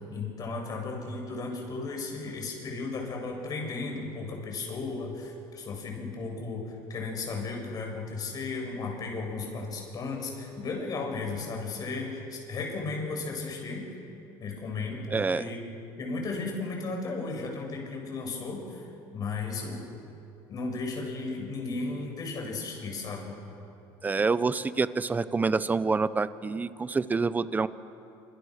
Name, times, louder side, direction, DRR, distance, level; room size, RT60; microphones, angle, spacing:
voice 1, 0.1-13.8 14.4-15.6 16.0-18.8 19.1-19.8 20.5-23.3, left 3 dB, 40° left, 1 dB, 7.5 m, -35 dB
voice 2, 15.1-15.5 24.0-27.7, right 4 dB, 20° right, 15 dB, 0.8 m, -27 dB
27.0 x 26.0 x 6.7 m, 2.8 s
cardioid pair, 120°, 10 cm